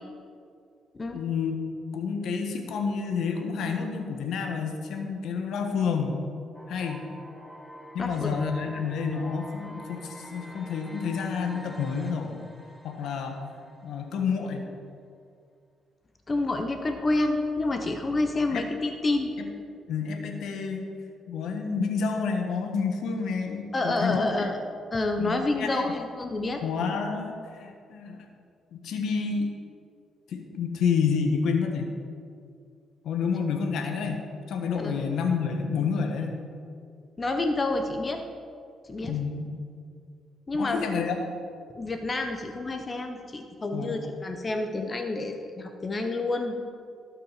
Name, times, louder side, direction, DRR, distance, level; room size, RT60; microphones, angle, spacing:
voice 1, 1.1-1.5 1.9-6.2 6.7-7.0 7.9-12.4 12.8-14.7 18.5-18.6 19.9-20.9 21.3-24.5 25.2-25.9 26.6-28.3 28.7-29.5 30.3-31.9 33.0-36.3 39.1-39.5 40.5-41.2 43.7-44.0, left 5 dB, 75° left, 4 dB, 1.4 m, -29 dB
sound 1, 6.5-14.5, equal, 5° left, 1.2 m, -46 dB
voice 2, 8.0-8.4 16.3-19.3 23.7-24.6 24.9-26.6 34.8-34.9 37.2-38.2 38.9-39.1 40.5-41.0 41.7-46.5, left 2 dB, 30° left, 5 dB, 1.0 m, -28 dB
17.0 x 5.9 x 5.0 m, 2.3 s
cardioid pair, 90°, 0 cm